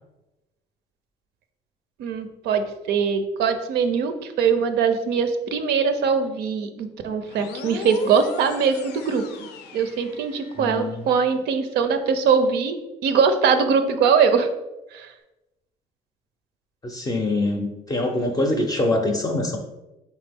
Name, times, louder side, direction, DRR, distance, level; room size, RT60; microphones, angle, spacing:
voice 1, 2.0-9.5 9.7-14.5 14.9-15.1, right 6 dB, 80° right, 8 dB, 0.5 m, -22 dB
moon siren, 7.3-10.8, left 5 dB, 85° left, 0.5 m, -37 dB
voice 2, 10.6-11.0 16.8-19.6, left 2 dB, 20° left, 2 dB, 0.5 m, -24 dB
4.2 x 3.4 x 3.5 m, 1.0 s
cardioid pair, 110°, 17 cm